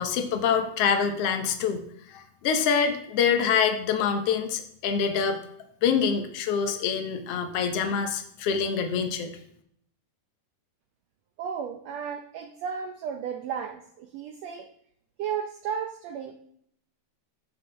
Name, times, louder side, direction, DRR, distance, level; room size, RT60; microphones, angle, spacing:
voice 1, 0.0-5.4 5.8-9.3, left 6 dB, 70° left, 6 dB, 1.5 m, -26 dB
voice 2, 11.4-14.7 15.2-16.4, right 7 dB, 80° right, 5 dB, 1.5 m, -34 dB
13.5 x 7.3 x 3.4 m, 0.69 s
omnidirectional pair, 3.8 m